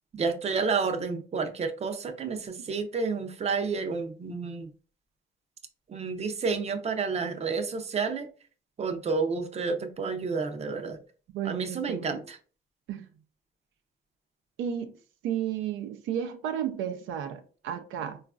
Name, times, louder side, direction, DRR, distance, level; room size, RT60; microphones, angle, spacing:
voice 1, 0.1-4.7 5.9-8.3 8.8-11.0 11.4-12.4, right 4 dB, 35° right, 0.5 m, -30 dB
voice 2, 11.3-12.2 12.9-13.1 14.6-14.9 15.2-18.2, right 9 dB, 85° right, 0.5 m, -33 dB
3.9 x 2.4 x 2.3 m
cardioid pair, 90°, 20 cm